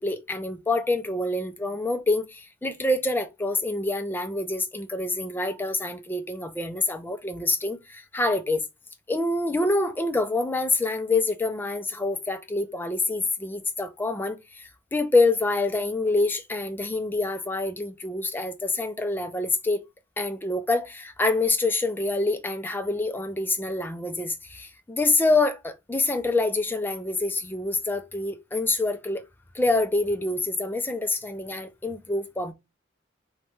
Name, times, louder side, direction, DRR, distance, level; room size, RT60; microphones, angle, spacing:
voice 1, 0.0-8.6 9.1-19.8 20.2-29.2 29.5-32.5, left 2 dB, 10° left, 0.3 m, -26 dB
3.0 x 2.2 x 3.1 m
head